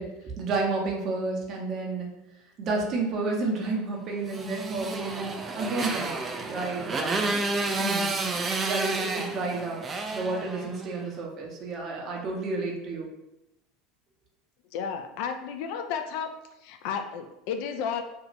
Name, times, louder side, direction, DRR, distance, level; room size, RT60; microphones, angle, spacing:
voice 1, 0.0-2.1 2.6-7.4 7.8-8.1 8.6-9.8 10.1-13.1, right 3 dB, 45° right, -1 dB, 0.8 m, -31 dB
Motorcycle, 4.3-11.0, right 3 dB, 30° right, 0.4 m, -30 dB
voice 2, 14.7-16.3 16.6-18.0, left 7 dB, 60° left, 6 dB, 0.3 m, -32 dB
2.7 x 2.4 x 3.1 m, 0.91 s
hypercardioid pair, 75°, 0 cm